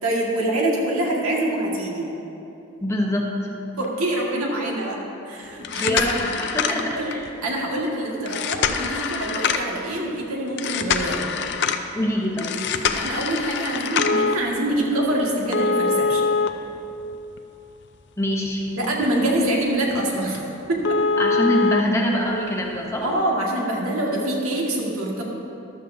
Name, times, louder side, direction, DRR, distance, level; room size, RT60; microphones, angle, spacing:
voice 1, 0.0-2.1 3.8-5.0 5.3-6.0 6.7-7.1 7.4-11.3 12.9-16.2 18.7-21.0 23.0-25.2, right 1 dB, 85° right, -2 dB, 1.9 m, -25 dB
voice 2, 2.8-3.3 5.8-7.3 11.9-12.6 18.2-18.7 21.2-23.0, equal, 15° left, -1 dB, 0.9 m, -24 dB
sound 1, 5.5-7.3 8.3-9.8 10.6-11.8 12.4-14.3 15.5-17.4 17.8-17.9 18.5-18.6 19.0-19.2 19.4-19.5 19.9-20.0 20.3-20.4 20.8-21.8 22.9-23.0, left 5 dB, 50° left, 0.5 m, -24 dB
14.5 x 12.5 x 2.7 m, 3.0 s
head